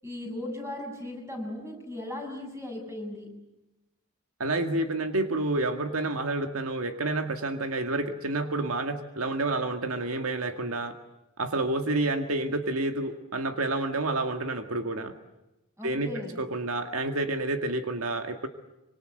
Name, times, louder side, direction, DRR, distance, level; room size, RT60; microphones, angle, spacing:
voice 1, 0.0-3.3 15.8-16.4, left 1 dB, 15° right, 2 dB, 7.5 m, -37 dB
voice 2, 4.4-11.0 11.4-15.1 15.8-18.5, right 2 dB, 80° right, 6 dB, 1.9 m, -29 dB
25.5 x 25.5 x 7.9 m, 0.96 s
head